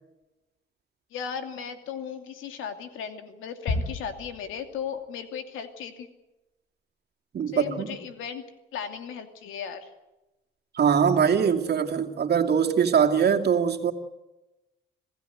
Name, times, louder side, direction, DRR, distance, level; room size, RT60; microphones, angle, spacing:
voice 1, 1.1-6.1 7.5-8.4 8.7-9.9, left 7 dB, 90° left, 6 dB, 2.7 m, -36 dB
sound 1, 3.7-5.1, left 2 dB, 70° left, 6.8 m, -32 dB
voice 2, 7.3-8.0 10.7-13.9, right 7 dB, 55° right, 3 dB, 2.5 m, -22 dB
27.5 x 16.5 x 8.0 m, 1.0 s
cardioid pair, 90°, 20 cm